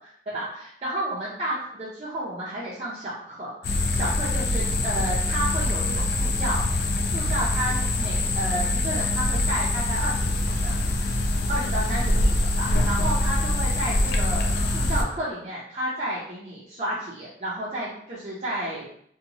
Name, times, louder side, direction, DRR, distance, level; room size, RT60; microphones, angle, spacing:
voice 1, 0.3-6.6 7.1-18.9, right 1 dB, 35° right, -7 dB, 0.5 m, -32 dB
sound 1, 3.6-15.0, left 1 dB, 60° left, 0.4 m, -24 dB
2.8 x 2.2 x 2.6 m, 0.67 s
head